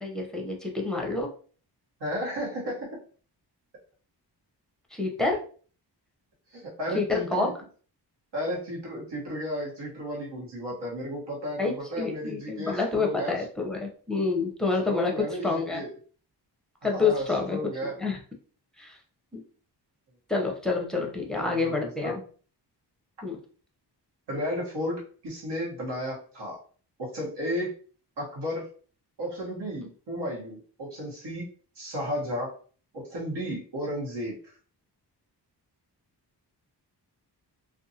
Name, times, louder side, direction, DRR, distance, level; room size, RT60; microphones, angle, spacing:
voice 1, 0.0-1.3 4.9-5.4 6.9-7.5 11.6-15.8 16.8-18.2 18.8-19.0 19.3-19.4 20.3-22.2 23.2-23.4, left 3 dB, ahead, 0 dB, 0.6 m, -28 dB
voice 2, 2.0-3.0 6.5-7.5 8.3-13.4 14.9-15.9 16.9-18.0 21.3-22.2 24.3-26.6 27.0-27.7 28.2-28.7 29.2-31.5 31.8-32.5 32.9-34.4, equal, 75° right, -4 dB, 1.2 m, -33 dB
2.6 x 2.4 x 2.7 m, 0.42 s
wide cardioid pair, 115°, 41 cm